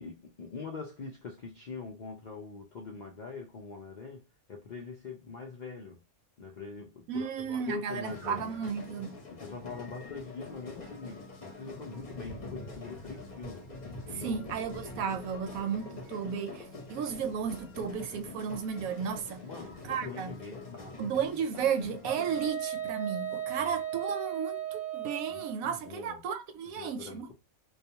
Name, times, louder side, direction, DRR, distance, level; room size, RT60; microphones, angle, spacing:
voice 1, 0.0-6.0 6.4-8.5 9.3-13.7 14.1-14.4 19.4-21.1 23.6-23.7 25.3-26.2 26.8-27.3, left 4 dB, 70° left, 0.4 m, -43 dB
voice 2, 7.1-9.2 14.1-19.4 19.8-20.3 21.0-27.3, right 7 dB, 80° right, 1.0 m, -34 dB
sound 1, 8.0-22.5, left 2 dB, 40° left, 0.7 m, -45 dB
Wind instrument woodwind instrument, 22.1-25.6, right 10 dB, 10° right, 0.6 m, -36 dB
2.4 x 2.3 x 2.7 m
omnidirectional pair, 1.5 m